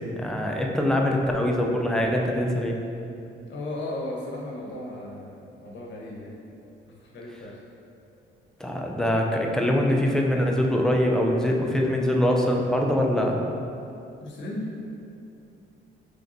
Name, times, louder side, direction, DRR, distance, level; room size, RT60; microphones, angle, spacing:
voice 1, 0.2-2.8 8.6-13.4, left 1 dB, 5° left, 0 dB, 0.4 m, -23 dB
voice 2, 3.4-6.3 7.1-7.6 14.2-14.7, left 1 dB, 65° left, -2 dB, 0.8 m, -35 dB
3.3 x 2.5 x 3.9 m, 2.7 s
cardioid pair, 90°, 20 cm